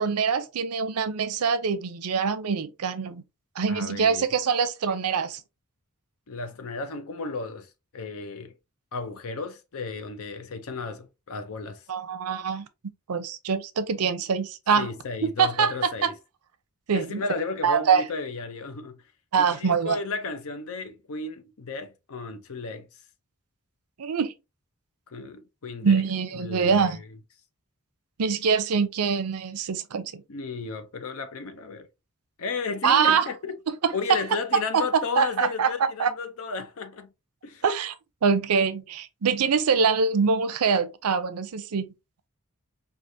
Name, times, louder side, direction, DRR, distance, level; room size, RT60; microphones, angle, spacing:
voice 1, 0.0-3.2 3.6-5.4 11.9-12.6 13.1-14.9 15.4-15.7 16.0-16.1 16.9-17.2 17.6-18.0 19.3-20.0 24.0-24.3 25.8-27.0 28.2-30.2 32.8-33.3 33.8-33.9 34.7-34.8 35.2-35.7 36.0-36.1 37.6-37.9 38.2-41.9, right 6 dB, 80° right, 0.5 m, -24 dB
voice 2, 3.7-4.3 6.3-8.5 8.9-11.8 14.8-16.1 16.9-19.0 19.4-22.9 25.1-26.0 26.3-27.0 30.3-31.9 32.4-33.6 33.9-37.1 37.4-37.6, left 4 dB, 65° left, 0.6 m, -34 dB
4.8 x 2.4 x 2.6 m
head